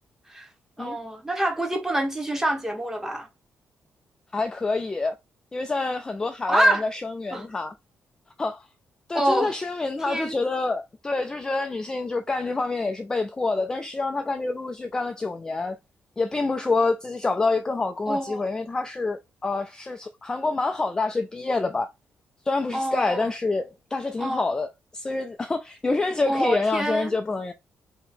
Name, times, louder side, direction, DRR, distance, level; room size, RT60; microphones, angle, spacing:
voice 1, 0.8-3.3 6.5-6.9 7.3-7.5 9.1-9.6 10.1-10.3 18.1-18.4 22.7-23.3 24.2-24.5 26.3-27.1, right 1 dB, 10° right, 0.9 m, -26 dB
voice 2, 4.3-5.1 5.5-7.7 8.4-8.6 9.1-15.8 16.2-21.9 22.5-27.5, left 3 dB, 15° left, 0.3 m, -27 dB
2.9 x 2.8 x 4.2 m
cardioid pair, 155°, 5 cm